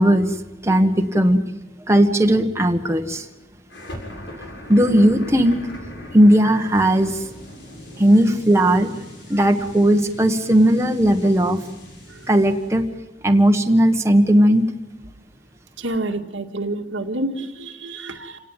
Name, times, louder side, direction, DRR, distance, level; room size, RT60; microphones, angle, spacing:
voice 1, 0.0-1.4 1.9-3.2 4.7-7.2 8.0-8.9 9.3-11.6 12.3-12.8 13.2-14.6, right 1 dB, 15° right, 4 dB, 1.5 m, -17 dB
sound 1, 3.7-12.8, left 1 dB, 70° left, 7.4 m, -40 dB
voice 2, 15.8-18.4, right 2 dB, 90° right, 4 dB, 2.0 m, -28 dB
28.0 x 18.0 x 9.1 m, 1.1 s
head